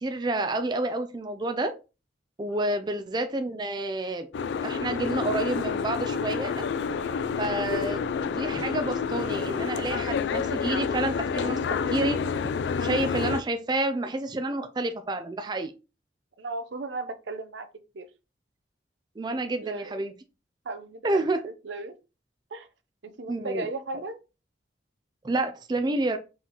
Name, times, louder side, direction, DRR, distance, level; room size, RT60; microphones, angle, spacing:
voice 1, 0.0-1.7 2.4-4.3 4.6-6.7 7.4-12.2 12.8-15.7 19.2-20.1 21.0-21.4 23.3-23.7 25.2-26.2, right 2 dB, 25° right, 0.4 m, -29 dB
voice 2, 2.5-2.8 6.9-7.2 16.4-17.7 17.9-18.1 19.6-20.0 20.6-22.0 22.5-22.7 23.0-24.2, right 3 dB, 90° right, 0.7 m, -36 dB
Boat Water vehicle, 4.3-13.4, left 6 dB, 75° left, 0.3 m, -29 dB
4.3 x 3.9 x 2.9 m
head